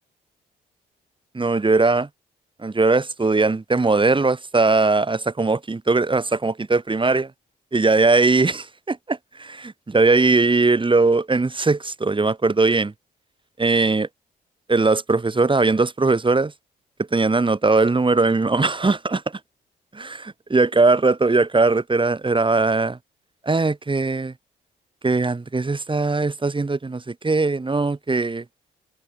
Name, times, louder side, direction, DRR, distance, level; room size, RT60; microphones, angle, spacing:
voice 1, 1.3-2.1 2.6-7.3 7.7-12.9 13.6-14.1 14.7-16.5 17.1-19.2 19.9-23.0 23.4-24.3 25.0-28.4, right 3 dB, 25° right, 1.5 m, -20 dB
hypercardioid pair, 50°, 21 cm